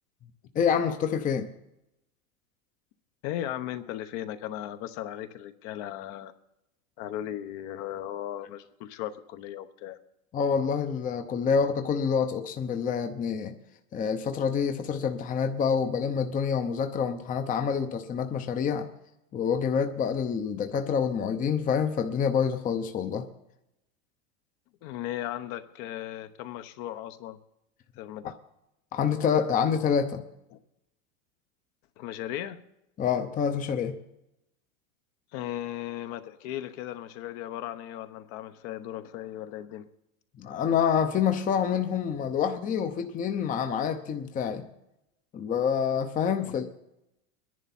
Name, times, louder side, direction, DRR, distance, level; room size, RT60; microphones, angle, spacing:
voice 1, 0.5-1.5 10.3-13.6 13.9-18.9 19.3-23.3 28.9-30.2 33.0-33.9 40.4-44.6 45.3-46.7, left 7 dB, 20° left, 6 dB, 0.8 m, -27 dB
voice 2, 3.2-6.3 7.0-10.0 24.8-27.4 28.0-28.4 30.5-30.6 32.0-32.6 35.3-39.9 46.4-46.5, left 12 dB, 50° left, 10 dB, 1.1 m, -37 dB
22.5 x 10.5 x 4.3 m, 0.87 s
supercardioid pair, 135°, 42 cm